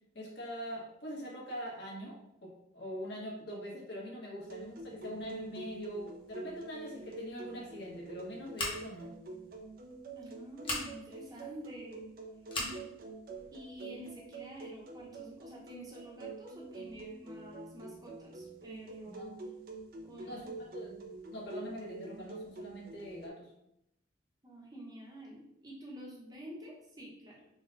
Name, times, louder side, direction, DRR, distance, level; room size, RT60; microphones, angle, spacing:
voice 1, 0.1-2.5 2.7-9.1 19.0-19.3 20.2-23.4, equal, 70° left, -4 dB, 1.1 m, -43 dB
sound 1, 4.4-23.3, right 3 dB, 50° right, 0.4 m, -47 dB
Scissors, 8.5-9.1 10.6-10.9 12.5-12.8, left 2 dB, 25° left, 0.8 m, -36 dB
voice 2, 10.1-12.0 12.6-12.8 13.5-19.4 20.0-20.4 24.4-27.5, equal, 20° right, -4 dB, 0.8 m, -48 dB
3.9 x 2.2 x 3.9 m, 0.81 s
head